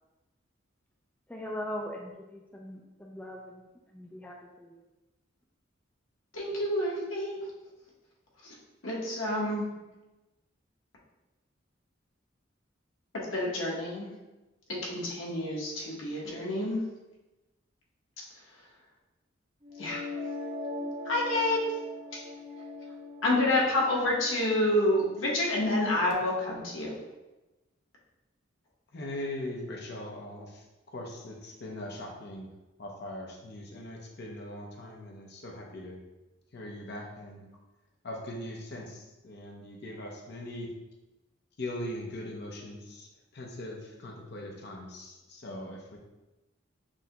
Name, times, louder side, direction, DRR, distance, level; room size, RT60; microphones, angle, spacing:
voice 1, 1.3-3.6 3.9-4.8, left 1 dB, 10° left, -1 dB, 0.3 m, -40 dB
voice 2, 6.3-7.4 8.4-8.5 8.8-9.7 13.1-14.1 14.8-16.8 19.8-20.0 21.0-21.6 22.1-22.2 23.2-26.9, left 1 dB, 85° left, -3 dB, 1.1 m, -28 dB
sound 1, 19.6-25.6, left 2 dB, 25° right, 0.7 m, -41 dB
voice 3, 28.9-32.5 32.8-36.0 36.5-37.5 38.0-40.7 41.6-46.0, left 1 dB, 55° left, 0 dB, 0.7 m, -40 dB
6.1 x 2.2 x 2.9 m, 1.1 s
head